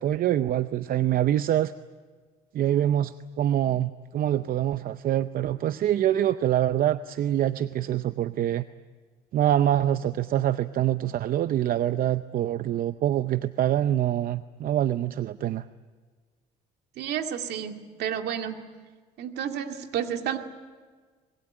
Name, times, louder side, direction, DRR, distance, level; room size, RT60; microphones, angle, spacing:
voice 1, 0.0-1.7 2.5-8.7 9.3-15.7, right 11 dB, 60° right, 12 dB, 0.7 m, -25 dB
voice 2, 17.0-18.6 19.2-20.4, right 9 dB, 75° right, 5 dB, 2.3 m, -31 dB
26.0 x 21.5 x 8.9 m, 1.5 s
cardioid pair, 110°, 17 cm